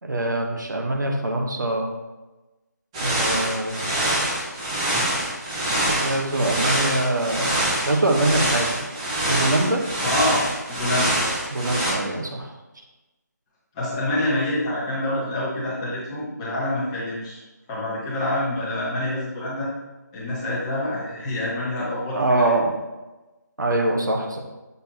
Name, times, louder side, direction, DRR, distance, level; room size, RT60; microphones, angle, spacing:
voice 1, 0.0-1.9 3.0-3.8 5.8-8.8 9.3-9.8 11.5-12.5 22.1-22.8 23.6-24.4, right 2 dB, 80° right, 1 dB, 1.3 m, -23 dB
sound 1, 2.9-11.9, right 1 dB, 20° right, 1.1 m, -25 dB
voice 2, 10.0-10.4 10.7-11.3 11.7-11.8 13.7-17.4 17.7-19.7 20.1-22.5, left 1 dB, 15° left, -8 dB, 1.6 m, -26 dB
8.1 x 4.1 x 2.9 m, 1.1 s
figure-of-eight pair, 165°, 10 cm